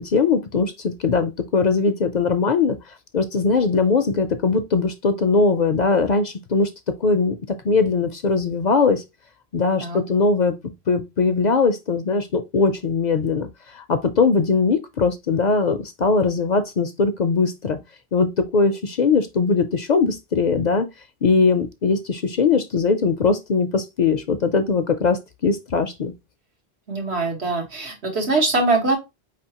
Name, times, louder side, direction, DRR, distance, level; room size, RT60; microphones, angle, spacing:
voice 1, 0.0-2.8 3.1-6.7 7.0-9.0 9.5-10.6 10.9-17.8 18.1-20.9 21.2-26.1, left 4 dB, 55° left, 0.5 m, -20 dB
voice 2, 26.9-29.0, right 3 dB, 85° right, 1.8 m, -22 dB
4.9 x 3.4 x 2.8 m
omnidirectional pair, 1.1 m